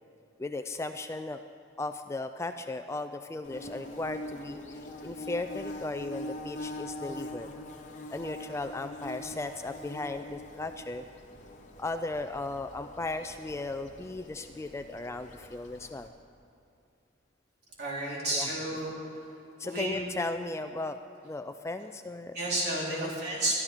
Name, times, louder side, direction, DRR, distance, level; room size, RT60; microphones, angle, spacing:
voice 1, 0.4-1.4 1.8-7.5 8.1-11.0 11.8-16.1 18.3-18.8 19.6-21.0 21.2-22.4 22.9-23.1, left 2 dB, 15° left, 8 dB, 0.3 m, -36 dB
Bird / Buzz, 3.4-16.1, left 1 dB, 40° left, 1.2 m, -43 dB
voice 2, 17.8-18.9 19.6-20.0 22.3-23.6, right 1 dB, 55° right, -5 dB, 3.9 m, -31 dB
23.0 x 12.0 x 3.6 m, 2.6 s
head